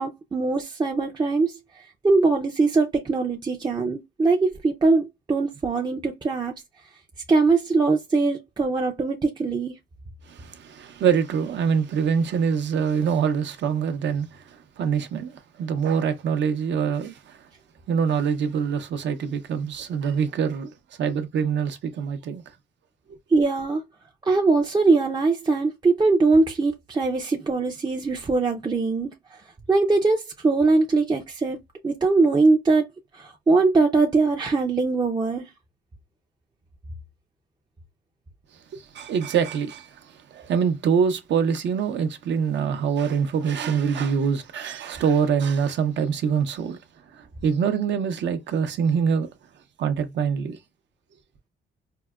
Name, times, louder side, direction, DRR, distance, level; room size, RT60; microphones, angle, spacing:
voice 1, 0.0-1.6 2.0-6.5 7.3-9.7 23.3-23.8 24.2-29.1 29.7-31.6 31.8-32.9 33.1-35.4, right 3 dB, 20° right, 0.5 m, -21 dB
voice 2, 10.3-17.5 17.9-20.7 21.0-22.4 38.7-46.8 47.1-49.3 49.8-50.6, right 7 dB, 65° right, 0.7 m, -25 dB
4.6 x 2.1 x 2.3 m
cardioid pair, 90°, 20 cm